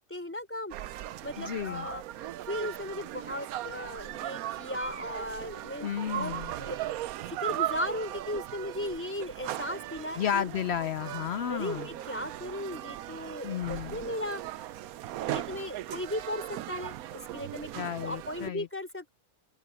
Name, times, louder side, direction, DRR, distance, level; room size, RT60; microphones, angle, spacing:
voice 1, 0.1-0.7 1.2-2.0 2.5-6.9 7.2-10.5 11.5-14.7 15.0-19.1, left 1 dB, 10° left, 4.0 m, -37 dB
sound 1, 0.7-18.5, right 13 dB, 80° right, 1.1 m, -38 dB
voice 2, 1.4-1.9 5.8-6.5 10.2-11.9 13.4-14.0 17.7-18.7, left 9 dB, 65° left, 0.7 m, -32 dB
open air
omnidirectional pair, 1.5 m